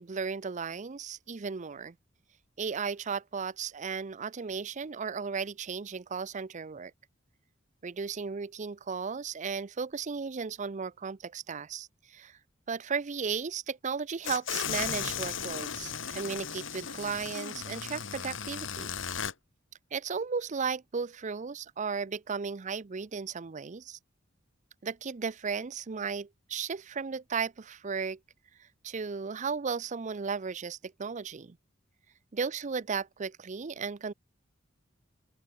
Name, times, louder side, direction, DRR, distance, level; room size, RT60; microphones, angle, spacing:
voice 1, 0.0-2.0 2.6-6.9 7.8-12.4 12.7-18.9 19.9-24.0 24.8-28.2 28.8-31.6 32.3-34.1, right 5 dB, 40° right, 0.5 m, -35 dB
sound 1, 14.2-19.3, left 7 dB, 75° left, 2.5 m, -36 dB
open air
head